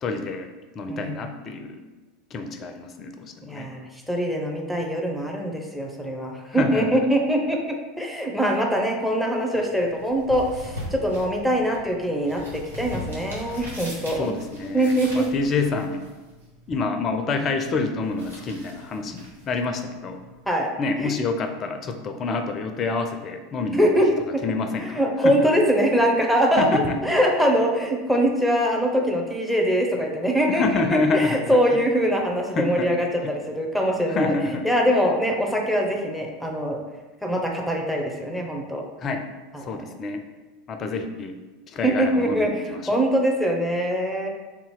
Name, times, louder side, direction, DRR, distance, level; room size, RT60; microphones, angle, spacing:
voice 1, 0.0-1.8 2.3-3.7 6.6-7.1 14.1-16.0 16.7-20.2 20.8-23.9 24.4-25.4 26.6-27.0 30.5-31.8 32.6-32.9 33.2-33.3 34.1-34.7 39.0-39.3 39.6-40.2 40.7-41.4 41.7-43.0, left 3 dB, 35° left, 7 dB, 0.5 m, -27 dB
voice 2, 0.9-1.3 3.4-14.3 14.7-15.3 20.5-20.7 21.0-21.1 23.8-24.1 24.9-34.3 34.6-36.8 37.2-38.8 39.5-39.7 41.8-44.3, equal, ahead, 0 dB, 0.8 m, -23 dB
sound 1, 9.5-20.5, left 1 dB, 80° right, 1.1 m, -41 dB
3.5 x 2.8 x 4.6 m, 1.2 s
figure-of-eight pair, 80°, 0 cm